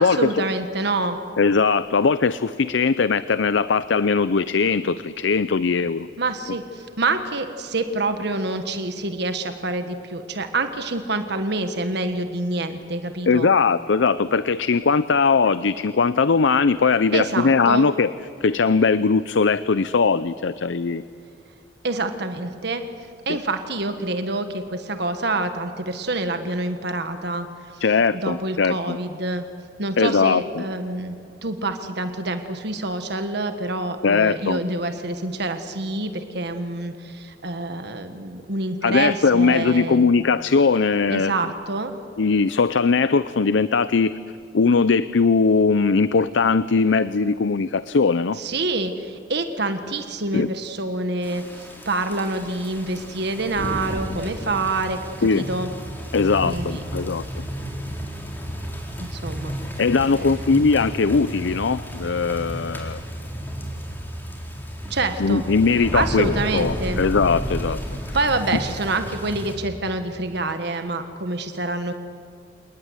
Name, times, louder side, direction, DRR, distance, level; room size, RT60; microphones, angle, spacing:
voice 1, 0.0-1.2 6.2-13.5 17.1-17.9 21.8-22.8 23.2-27.5 27.7-27.8 28.1-29.4 29.8-40.1 41.1-41.9 48.4-55.7 56.4-56.8 59.0-59.5 59.9-60.3 64.9-65.4 65.9-67.0 68.1-71.9, right 2 dB, 65° right, 7 dB, 1.5 m, -27 dB
voice 2, 1.4-6.1 13.3-18.1 18.4-21.0 23.3-23.4 27.8-29.0 30.0-30.6 34.0-34.6 38.8-41.3 42.2-44.2 44.5-48.4 50.3-50.5 55.2-55.5 56.1-57.2 59.8-63.0 65.2-67.8, left 4 dB, 80° left, 15 dB, 0.6 m, -20 dB
sound 1, 51.2-69.6, equal, 10° left, 4.5 m, -32 dB
27.5 x 19.5 x 9.8 m, 2.3 s
head